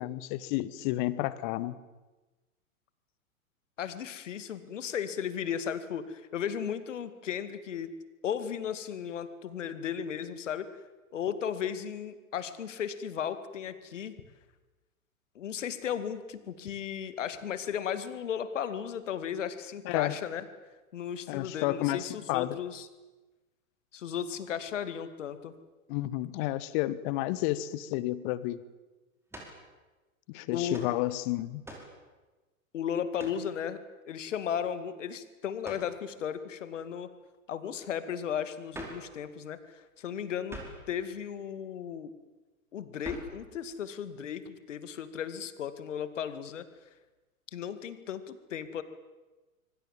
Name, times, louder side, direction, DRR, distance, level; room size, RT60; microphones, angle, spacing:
voice 1, 0.0-1.8 19.8-20.2 21.3-22.6 25.9-28.6 30.3-31.6, left 16 dB, 35° left, 17 dB, 1.3 m, -31 dB
voice 2, 3.8-7.9 8.2-10.7 11.1-14.2 15.3-20.4 20.9-22.9 23.9-25.5 30.5-30.9 32.7-37.1 37.5-40.6 40.9-42.1 42.7-46.7 47.5-48.8, left 8 dB, 60° left, 12 dB, 2.4 m, -35 dB
sound 1, 29.3-29.6 30.7-31.0 31.6-32.0 33.2-33.5 35.6-35.9 38.7-39.1 40.5-40.9 43.0-43.4, right 1 dB, 5° right, 5.2 m, -44 dB
25.5 x 24.0 x 7.6 m, 1.2 s
figure-of-eight pair, 105°, 43 cm